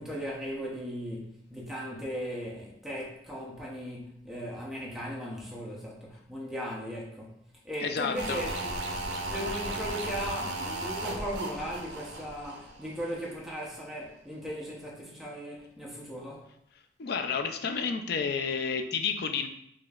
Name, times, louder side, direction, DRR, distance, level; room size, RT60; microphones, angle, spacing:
voice 1, 0.0-8.7 9.3-16.5, equal, ahead, -5 dB, 0.7 m, -38 dB
voice 2, 7.8-8.4 17.0-19.5, left 5 dB, 55° left, 7 dB, 0.4 m, -30 dB
sound 1, 8.2-13.3 13.6-13.7, right 2 dB, 65° right, 0.5 m, -35 dB
4.9 x 2.7 x 2.4 m, 0.75 s
head